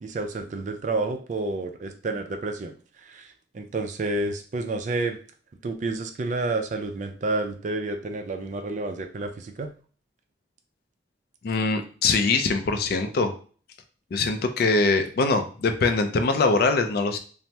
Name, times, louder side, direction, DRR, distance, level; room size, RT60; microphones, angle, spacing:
voice 1, 0.0-2.7 3.0-5.2 5.6-9.7, right 2 dB, 40° right, 6 dB, 0.3 m, -30 dB
voice 2, 11.4-13.3 14.1-17.2, left 3 dB, 55° left, 7 dB, 0.4 m, -23 dB
2.8 x 2.0 x 3.2 m, 0.41 s
head